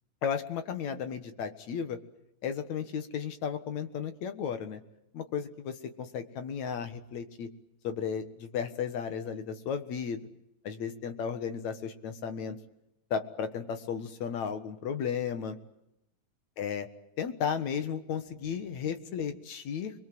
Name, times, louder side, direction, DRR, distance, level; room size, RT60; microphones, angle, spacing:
voice 1, 0.2-2.0 2.4-4.8 5.1-7.5 7.8-10.3 10.6-12.6 13.1-15.6 16.6-16.9 17.2-19.9, left 7 dB, 60° left, 8 dB, 2.6 m, -34 dB
30.0 x 22.0 x 7.8 m, 0.85 s
omnidirectional pair, 4.1 m